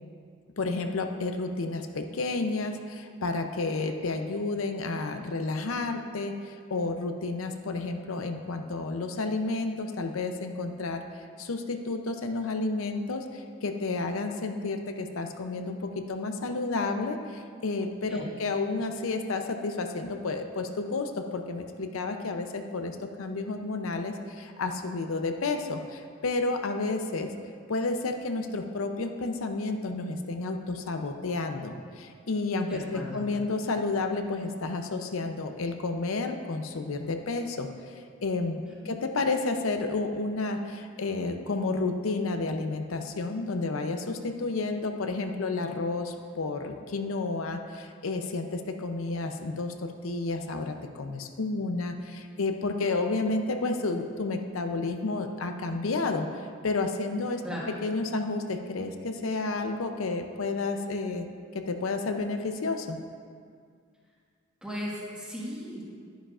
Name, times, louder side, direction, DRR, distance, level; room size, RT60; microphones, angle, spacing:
voice 1, 0.6-11.0 11.4-27.3 27.7-37.7 38.2-56.3 56.6-61.3 61.5-63.0, left 3 dB, 85° left, 6 dB, 0.6 m, -31 dB
voice 2, 32.7-33.2 38.8-38.9 57.4-57.6 64.6-65.8, equal, 5° right, -6 dB, 1.6 m, -37 dB
11.0 x 10.0 x 2.5 m, 2.2 s
head